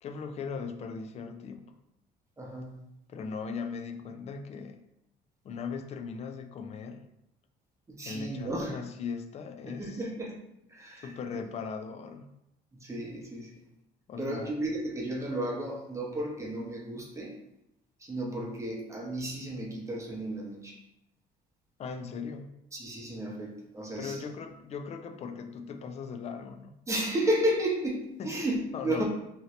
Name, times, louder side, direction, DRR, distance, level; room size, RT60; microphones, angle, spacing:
voice 1, 0.0-1.7 3.1-4.9 5.4-7.1 8.0-10.0 11.0-12.3 14.1-14.6 21.8-22.5 24.0-26.7 28.2-28.4 28.7-29.0, left 5 dB, 40° left, 7 dB, 0.4 m, -39 dB
voice 2, 2.4-2.8 7.9-8.8 9.7-10.4 10.7-11.1 12.7-13.6 14.2-17.4 18.0-20.8 22.7-24.2 26.9-29.0, right 1 dB, 15° right, -2 dB, 0.8 m, -33 dB
2.8 x 2.7 x 3.1 m, 0.84 s
cardioid pair, 110°, 17 cm